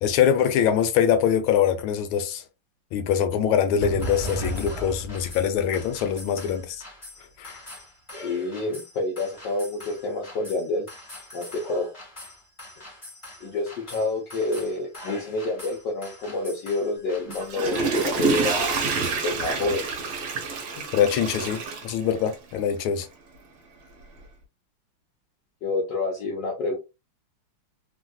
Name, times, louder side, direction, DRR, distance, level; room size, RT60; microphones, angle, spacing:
voice 1, 0.0-2.4 2.9-6.8 7.4-7.6 20.9-23.1, left 8 dB, 80° left, 1.4 m, -23 dB
sound 1, 3.8-19.5, right 1 dB, 15° left, 1.1 m, -39 dB
voice 2, 8.2-10.9 11.3-11.9 13.4-18.8 19.2-19.8 25.6-26.8, left 2 dB, 65° left, 1.3 m, -28 dB
Water / Toilet flush, 17.3-22.6 23.0-23.1, right 4 dB, 60° right, 1.2 m, -27 dB
3.4 x 2.5 x 2.2 m
omnidirectional pair, 2.3 m